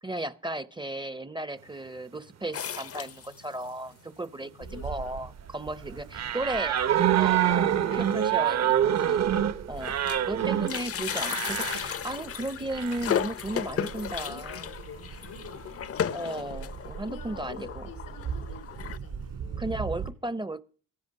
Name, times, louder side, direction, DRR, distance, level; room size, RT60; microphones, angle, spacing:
voice 1, 0.0-6.8 7.1-9.3 9.7-10.0 10.3-14.6 16.1-17.8 19.6-20.6, right 1 dB, 15° right, 0.6 m, -35 dB
sound 1, 2.5-3.7 4.2-4.3 4.5-4.6 5.5-5.6 6.0-6.2 6.5-6.6 7.9-8.0 8.7-8.8 9.1-10.3 10.6-19.0, left 9 dB, 45° left, 0.6 m, -35 dB
voice 2, 4.4-5.2 6.5-6.8 7.8-8.3 14.2-16.6 17.1-17.6 17.8-19.8, left 5 dB, 90° left, 2.9 m, -48 dB
Ocean, 4.6-20.1, right 6 dB, 75° right, 2.8 m, -42 dB
sound 2, 6.1-11.8 12.7-13.1, right 10 dB, 50° right, 0.8 m, -25 dB
15.0 x 10.5 x 6.3 m
cardioid pair, 110°, 33 cm